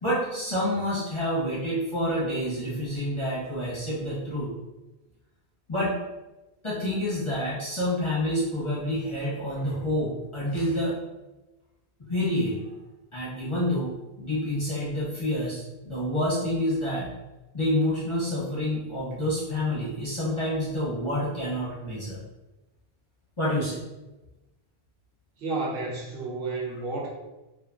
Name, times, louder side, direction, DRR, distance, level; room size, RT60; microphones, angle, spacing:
voice 1, 0.0-4.5 5.7-6.0 6.6-11.0 12.1-12.7 13.1-17.1 17.5-22.2 23.4-23.8, left 1 dB, 35° left, -8 dB, 0.6 m, -28 dB
voice 2, 25.4-27.1, right 3 dB, 65° right, -3 dB, 0.8 m, -31 dB
2.6 x 2.5 x 2.3 m, 1.0 s
omnidirectional pair, 1.1 m